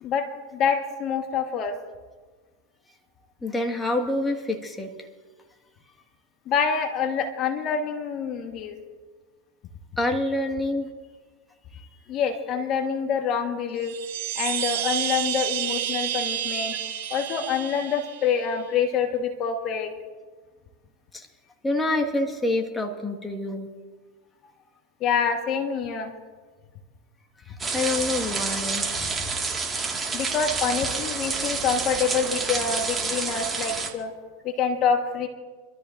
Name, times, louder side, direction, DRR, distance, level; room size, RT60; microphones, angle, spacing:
voice 1, 0.0-1.8 6.5-8.8 12.1-14.0 14.4-16.8 17.1-19.9 25.0-26.1 29.0-29.1 30.1-34.1 34.4-35.3, left 6 dB, 45° left, 5 dB, 1.4 m, -26 dB
voice 2, 3.4-5.1 10.0-10.9 11.7-11.9 21.1-21.3 21.6-23.7 27.4-28.9, left 2 dB, 10° left, 2 dB, 1.6 m, -27 dB
Chime, 13.8-18.5, right 11 dB, 65° right, 3.0 m, -30 dB
sound 1, 27.6-33.9, right 4 dB, 20° right, 1.8 m, -29 dB
26.0 x 13.0 x 2.6 m, 1.4 s
hypercardioid pair, 115°, 0 cm